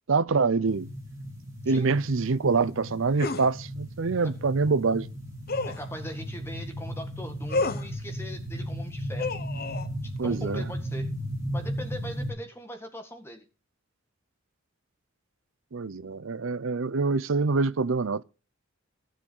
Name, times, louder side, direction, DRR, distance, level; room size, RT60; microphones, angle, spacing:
voice 1, 0.1-0.9 1.7-5.1 10.2-10.6 15.7-18.2, right 4 dB, 65° right, 0.6 m, -25 dB
sound 1, 0.6-12.3, equal, 15° right, 5.1 m, -36 dB
sound 2, 3.2-3.5 5.5-5.9 7.5-7.9 9.2-9.9, left 3 dB, 45° left, 1.0 m, -30 dB
voice 2, 5.7-9.3 10.0-11.1 11.5-13.4, equal, 10° left, 1.9 m, -40 dB
16.0 x 7.3 x 5.5 m
head